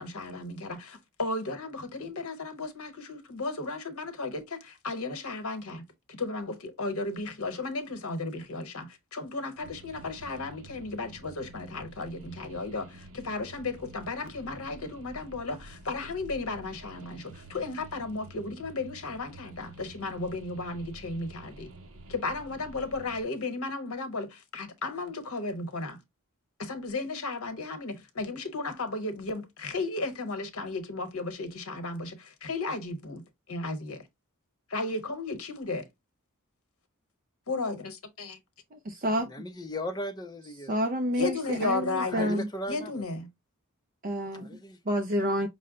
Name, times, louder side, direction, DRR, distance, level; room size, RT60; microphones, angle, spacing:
voice 1, 0.0-21.7 22.1-26.0 26.6-33.2 33.5-34.1 34.7-35.9 37.5-38.4 41.1-43.3, left 3 dB, 75° left, 1.0 m, -34 dB
sound 1, 9.5-23.2, right 2 dB, 65° right, 0.9 m, -49 dB
voice 2, 38.7-39.3 40.7-42.5 44.0-44.5 44.9-45.5, equal, 40° right, 0.5 m, -29 dB
voice 3, 39.3-40.8 41.6-41.7 42.1-43.0 44.3-44.8, equal, 20° left, 0.6 m, -37 dB
5.5 x 2.1 x 3.7 m
head